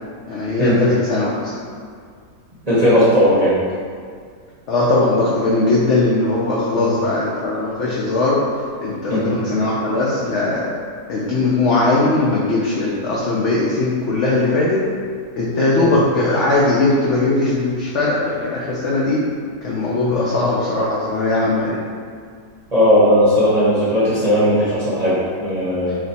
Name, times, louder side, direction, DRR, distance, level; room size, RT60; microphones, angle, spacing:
voice 1, 0.3-1.5 4.7-8.4 8.8-10.7 11.1-14.8 15.4-19.2 19.6-21.8, left 2 dB, 70° left, -5 dB, 0.7 m, -19 dB
voice 2, 2.7-3.6 6.7-6.9 9.1-9.3 15.8-15.9 20.1-20.2 22.7-26.0, equal, 30° right, -10 dB, 0.8 m, -16 dB
3.3 x 3.0 x 4.1 m, 2.1 s
omnidirectional pair, 1.8 m